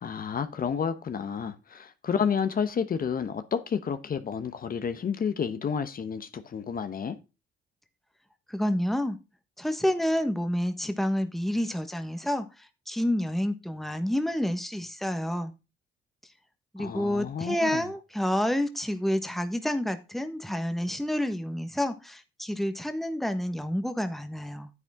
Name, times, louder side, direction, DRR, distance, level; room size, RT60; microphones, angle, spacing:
voice 1, 0.0-7.1 16.8-17.8, left 7 dB, 45° left, 1.0 m, -30 dB
voice 2, 8.5-9.2 9.6-12.4 12.9-15.5 16.7-24.7, left 1 dB, ahead, 1.3 m, -29 dB
9.7 x 8.2 x 3.6 m
cardioid pair, 90°, 20 cm